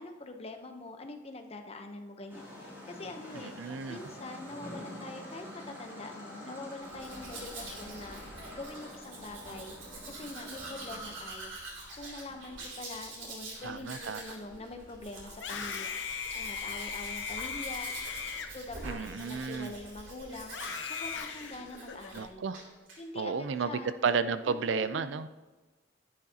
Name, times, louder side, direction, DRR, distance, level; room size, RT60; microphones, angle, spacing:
voice 1, 0.0-8.2 8.5-9.7 10.0-11.6 11.9-16.0 16.3-18.2 18.5-20.6 20.8-22.4 23.0-23.9 24.5-25.1, left 2 dB, 30° left, 5 dB, 0.8 m, -44 dB
sound 1, 2.3-11.2, left 1 dB, 10° right, 2.6 m, -46 dB
voice 2, 3.3-4.0 13.6-14.2 18.8-19.7 22.1-22.6 23.2-25.3, right 5 dB, 75° right, 12 dB, 0.4 m, -32 dB
Domestic sounds home sounds, 6.8-22.3 22.5-23.0, right 2 dB, 90° right, 3.0 m, -45 dB
Screaming, 15.3-19.8 20.5-22.2, left 6 dB, 75° left, 0.8 m, -39 dB
10.5 x 10.5 x 2.8 m, 1.3 s
head